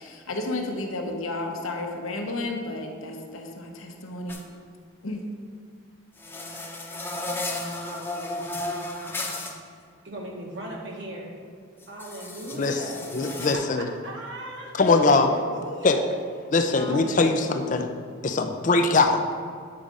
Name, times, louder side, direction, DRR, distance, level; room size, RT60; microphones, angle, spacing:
voice 1, 0.0-4.4 5.0-5.2, left 2 dB, 85° left, 2 dB, 1.1 m, -32 dB
sound 1, 4.3-4.4 6.2-9.5 11.8-13.5, left 2 dB, 10° left, 0.8 m, -33 dB
voice 2, 10.0-11.3 11.9-13.0 13.5-14.7 15.0-16.1 16.7-17.4, right 1 dB, 55° right, -2 dB, 1.5 m, -37 dB
voice 3, 13.1-13.9 14.8-15.3 15.8-16.0 16.5-17.9 18.2-19.3, left 3 dB, 35° left, 6 dB, 0.4 m, -21 dB
8.8 x 4.9 x 5.3 m, 2.3 s
head